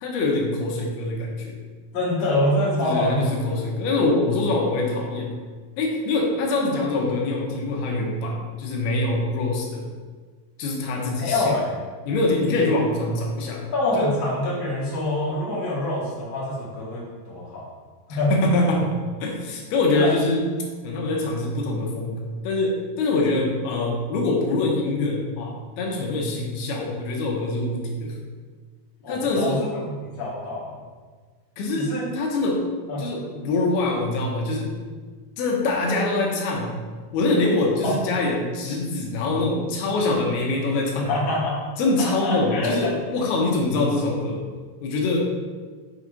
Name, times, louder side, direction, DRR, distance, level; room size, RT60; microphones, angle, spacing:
voice 1, 0.0-1.6 2.8-5.4 5.8-9.9 10.6-11.5 12.1-13.6 14.0-14.1 18.1-20.4 20.8-28.1 29.1-29.6 31.6-32.6 33.0-34.7 35.4-36.8 37.1-41.2 41.8-44.4 44.8-45.2, left 2 dB, 90° left, 0 dB, 2.9 m, -24 dB
voice 2, 1.9-3.4 11.1-11.8 13.7-17.6 18.1-18.3 19.9-20.1 29.0-30.8 31.8-32.1 32.9-33.0 37.8-37.9 41.1-41.6 42.0-42.9, left 1 dB, 40° left, -7 dB, 2.2 m, -25 dB
7.1 x 4.0 x 4.9 m, 1.5 s
omnidirectional pair, 4.4 m